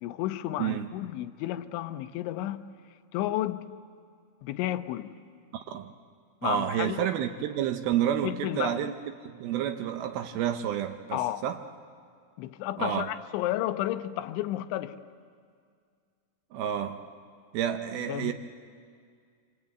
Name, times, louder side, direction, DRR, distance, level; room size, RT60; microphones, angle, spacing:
voice 1, 0.0-2.6 3.1-3.6 4.4-5.1 6.4-7.1 8.2-8.8 11.1-11.5 12.4-15.0 18.1-18.3, left 14 dB, 80° left, 3.1 m, -32 dB
voice 2, 0.6-0.9 5.5-5.9 6.4-8.9 9.2-11.6 12.8-13.1 16.5-17.0 17.5-18.3, right 10 dB, 85° right, 2.1 m, -30 dB
26.5 x 25.5 x 8.8 m
omnidirectional pair, 5.6 m